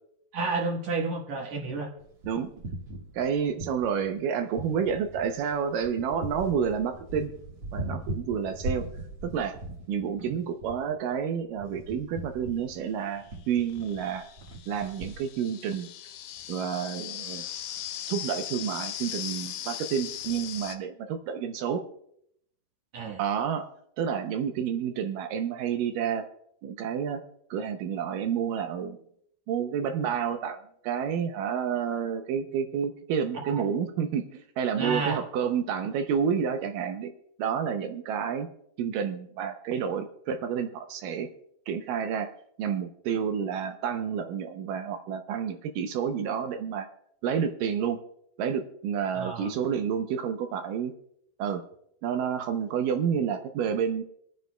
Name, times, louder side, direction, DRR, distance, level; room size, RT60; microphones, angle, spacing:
voice 1, 0.3-1.9 10.3-10.4 22.9-23.2 33.3-33.6 34.7-35.2 49.1-49.6, right 3 dB, 60° right, 0 dB, 2.5 m, -31 dB
sound 1, 2.0-4.2 4.5-15.2, right 1 dB, 40° right, 1.8 m, -39 dB
voice 2, 3.2-7.3 7.7-8.9 9.2-9.6 9.9-14.3 14.7-15.9 16.5-17.5 18.1-21.8 23.2-23.6 24.0-26.3 26.6-27.2 27.5-29.0 29.5-37.1 37.4-38.5 38.8-41.3 41.7-42.3 42.6-46.9 47.2-48.0 48.4-50.9 51.4-51.6 52.0-54.0, right 7 dB, 75° right, 6 dB, 2.3 m, -29 dB
sound 2, 12.3-12.4 13.3-20.8, left 11 dB, 80° left, 2.2 m, -39 dB
26.5 x 9.1 x 2.2 m, 0.71 s
omnidirectional pair, 4.0 m